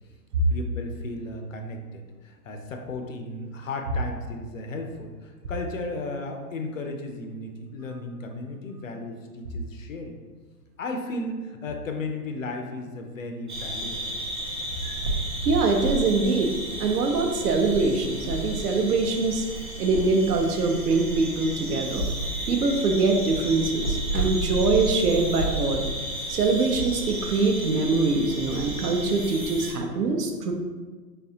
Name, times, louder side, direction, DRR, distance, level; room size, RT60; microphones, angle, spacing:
voice 1, 0.5-10.1 10.8-14.2, left 2 dB, 55° left, 4 dB, 0.5 m, -35 dB
sound 1, 13.5-29.7, right 2 dB, 35° right, 0.5 m, -32 dB
voice 2, 15.4-19.4 19.8-22.1 22.5-25.8 26.3-30.5, right 3 dB, 70° right, 4 dB, 0.7 m, -23 dB
4.0 x 3.3 x 2.8 m, 1.4 s
hypercardioid pair, 160°, 49 cm